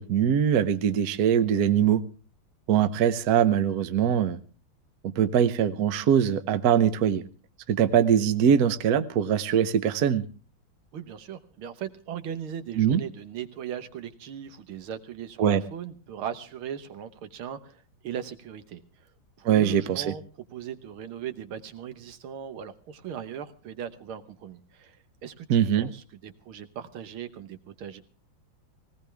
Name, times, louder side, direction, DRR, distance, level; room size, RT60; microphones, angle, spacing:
voice 1, 0.0-2.0 2.7-4.4 5.0-7.2 7.7-10.2 12.8-13.0 15.4-15.6 19.4-20.1 25.5-25.9, right 9 dB, 55° right, 12 dB, 1.2 m, -22 dB
voice 2, 10.9-18.8 19.4-25.5 25.8-28.0, right 9 dB, 80° right, 10 dB, 2.0 m, -38 dB
18.5 x 18.0 x 3.4 m, 0.35 s
omnidirectional pair, 2.3 m